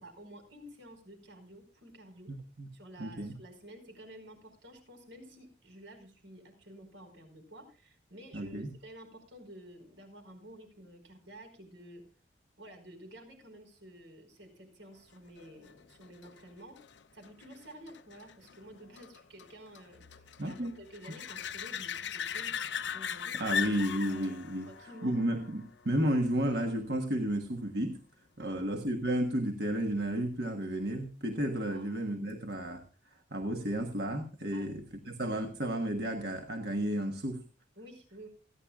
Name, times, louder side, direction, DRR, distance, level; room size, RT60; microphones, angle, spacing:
voice 1, 0.0-2.3 2.7-12.0 12.6-16.8 17.1-23.4 23.8-24.3 24.6-25.3 28.4-28.6 31.7-31.9 34.5-34.8 37.7-38.3, right 1 dB, 80° right, 5 dB, 4.9 m, -51 dB
voice 2, 2.3-2.7 3.0-3.3 8.3-8.7 20.4-20.7 23.3-24.7 25.0-28.0 28.4-32.8 33.3-37.4, right 1 dB, 55° right, 4 dB, 1.3 m, -32 dB
sound 1, 15.4-26.7 32.3-32.4, left 7 dB, 70° left, 0.7 m, -40 dB
28.5 x 10.5 x 2.4 m, 0.33 s
head